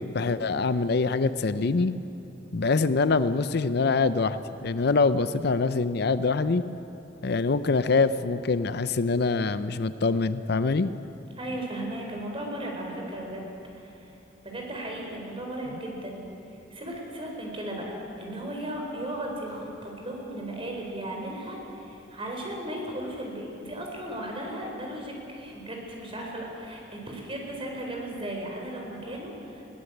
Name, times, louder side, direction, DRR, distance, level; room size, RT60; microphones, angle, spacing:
voice 1, 0.0-1.9 2.5-6.6 7.2-10.9, left 4 dB, 60° left, 13 dB, 0.6 m, -24 dB
voice 2, 11.4-14.1 14.4-16.2 16.7-29.6, right 1 dB, 30° right, 0 dB, 4.3 m, -36 dB
21.0 x 16.5 x 8.0 m, 2.9 s
head